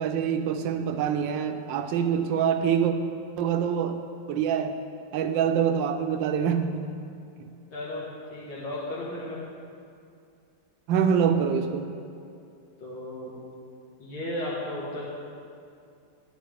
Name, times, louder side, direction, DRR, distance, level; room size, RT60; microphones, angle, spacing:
voice 1, 0.0-2.9 3.4-4.0 4.3-4.7 5.1-6.9 10.9-11.9, right 7 dB, 80° right, 7 dB, 1.3 m, -25 dB
voice 2, 7.7-8.0 8.3-9.4 12.8-13.3 14.0-15.0, left 1 dB, 85° left, -7 dB, 2.3 m, -34 dB
10.5 x 9.0 x 3.4 m, 2.5 s
omnidirectional pair, 2.1 m